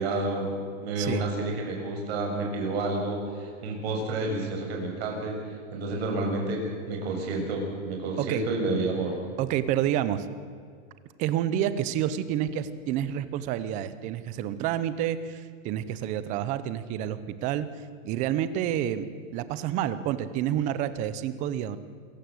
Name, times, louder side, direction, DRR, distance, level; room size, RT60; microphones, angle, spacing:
voice 1, 0.0-5.3 5.7-9.2, right 2 dB, 50° right, 1 dB, 7.0 m, -30 dB
voice 2, 1.0-1.3 8.2-8.4 9.4-10.3 11.2-19.1 19.3-21.8, right 11 dB, 20° right, 14 dB, 0.8 m, -29 dB
27.0 x 15.5 x 7.9 m, 2.1 s
supercardioid pair, 165°, 40 cm